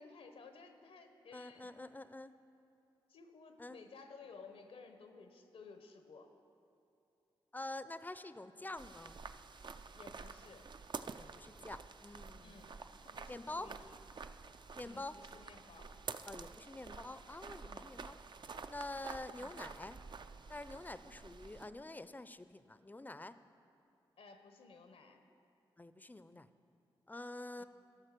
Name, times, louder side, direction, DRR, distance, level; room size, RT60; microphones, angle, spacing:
voice 1, 0.0-1.7 3.1-6.3 9.9-10.7 12.4-14.0 14.8-16.0 17.6-17.9 19.4-19.6 24.2-25.2 27.6-27.7, left 4 dB, 85° left, 7 dB, 0.9 m, -56 dB
voice 2, 1.3-2.3 3.6-3.8 7.5-9.2 11.2-12.7 13.3-13.7 14.7-15.1 16.3-18.2 18.7-20.0 20.5-23.4 25.8-26.5 27.1-27.6, left 2 dB, 20° left, 13 dB, 0.5 m, -47 dB
sound 1, 8.8-21.7, right 4 dB, 50° right, 0.4 m, -49 dB
13.5 x 6.0 x 6.7 m, 2.9 s
cardioid pair, 50°, 10 cm